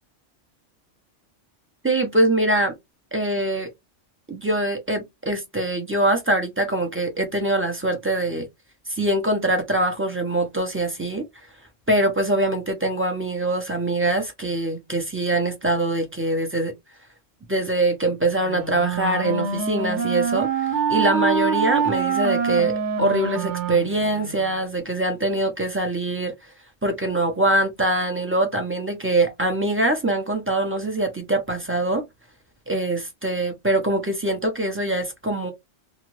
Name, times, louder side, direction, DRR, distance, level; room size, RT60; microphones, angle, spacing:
voice 1, 1.8-2.7 3.1-3.7 4.3-8.5 8.9-11.2 11.9-16.7 17.5-22.7 23.0-26.3 26.8-32.0 32.7-35.5, right 1 dB, 10° right, 0.7 m, -23 dB
Wind instrument woodwind instrument, 18.4-24.6, right 6 dB, 70° right, 1.2 m, -25 dB
2.6 x 2.5 x 3.1 m
omnidirectional pair, 1.3 m